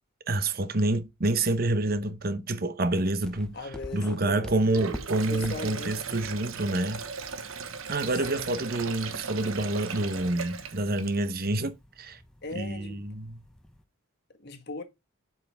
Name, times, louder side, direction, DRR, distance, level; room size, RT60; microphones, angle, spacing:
voice 1, 0.3-3.6 3.9-7.0 7.9-11.7 12.0-12.2 12.5-13.4, right 2 dB, 45° right, 0.9 m, -28 dB
sound 1, 3.2-13.8, equal, 5° left, 0.9 m, -48 dB
voice 2, 3.5-4.6 5.3-6.3 8.1-8.5 12.4-13.0 14.4-14.8, left 3 dB, 55° left, 1.5 m, -39 dB
Sink (filling or washing), 4.6-11.4, right 5 dB, 85° right, 1.1 m, -38 dB
7.3 x 5.7 x 3.4 m
head